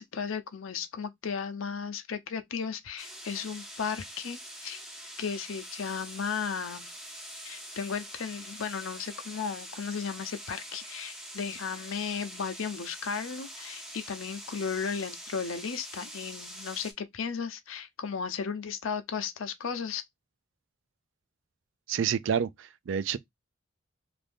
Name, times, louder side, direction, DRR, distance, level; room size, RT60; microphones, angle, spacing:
voice 1, 0.0-4.8 5.2-6.9 7.4-20.0, left 6 dB, 80° left, 0.5 m, -35 dB
sound 1, 3.0-16.9, equal, ahead, 0.5 m, -44 dB
voice 2, 21.9-23.2, right 7 dB, 65° right, 0.3 m, -29 dB
2.6 x 2.5 x 3.4 m
head